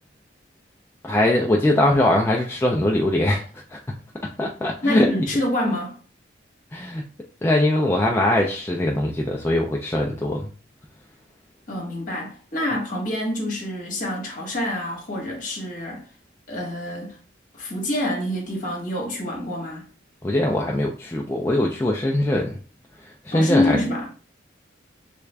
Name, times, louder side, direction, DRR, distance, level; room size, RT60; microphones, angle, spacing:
voice 1, 1.0-3.8 4.4-5.1 6.7-7.0 7.4-10.5 20.2-22.6 23.2-23.8, left 1 dB, 15° left, 0.3 m, -21 dB
voice 2, 4.8-6.0 11.7-16.1 16.5-17.2 17.5-19.8 23.3-24.1, left 1 dB, 45° left, 1.2 m, -26 dB
3.3 x 2.4 x 3.2 m
head